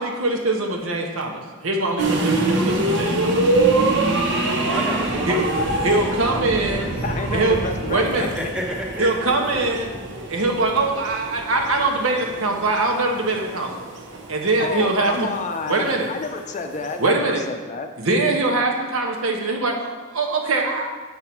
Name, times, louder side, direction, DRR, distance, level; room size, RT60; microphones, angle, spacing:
voice 1, 0.0-3.3 5.3-5.4 5.8-6.9 7.3-7.6 7.9-8.3 9.0-9.9 10.3-13.7 14.3-15.3 15.7-16.1 17.0-17.4 18.0-20.9, right 2 dB, 75° right, 1 dB, 1.1 m, -22 dB
sound 1, 2.0-17.1, right 2 dB, 55° right, 1.0 m, -25 dB
voice 2, 4.7-7.0 8.2-9.3 9.7-9.8, equal, 5° right, -1 dB, 1.0 m, -32 dB
voice 3, 7.0-8.3 14.6-17.9, left 4 dB, 35° left, 6 dB, 0.5 m, -29 dB
7.8 x 5.7 x 4.5 m, 1.3 s
head